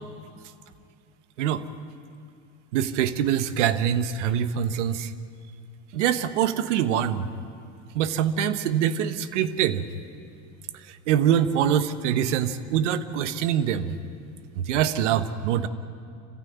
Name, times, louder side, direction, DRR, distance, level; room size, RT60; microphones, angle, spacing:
voice 1, 2.7-5.1 5.9-7.3 7.9-9.9 10.9-14.0 14.5-15.7, right 9 dB, 80° right, 12 dB, 1.2 m, -24 dB
25.5 x 15.5 x 9.3 m, 2.4 s
hypercardioid pair, 90°, 35 cm